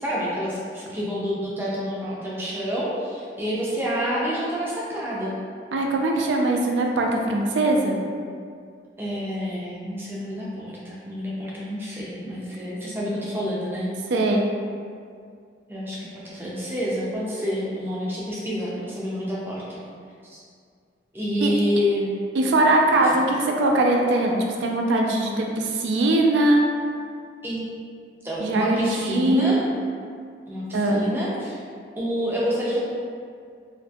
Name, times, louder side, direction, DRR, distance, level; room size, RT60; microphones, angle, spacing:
voice 1, 0.0-5.3 9.0-13.9 15.7-19.8 20.3-20.4 21.1-22.1 23.0-23.2 27.4-27.6 28.2-29.6 30.5-31.6 32.0-32.8, equal, 10° right, -6 dB, 0.4 m, -28 dB
voice 2, 5.7-8.0 14.1-14.5 21.4-21.5 22.3-26.6 28.4-29.6 30.7-31.0, right 2 dB, 80° right, 1 dB, 0.3 m, -21 dB
2.5 x 2.5 x 2.3 m, 2.2 s
head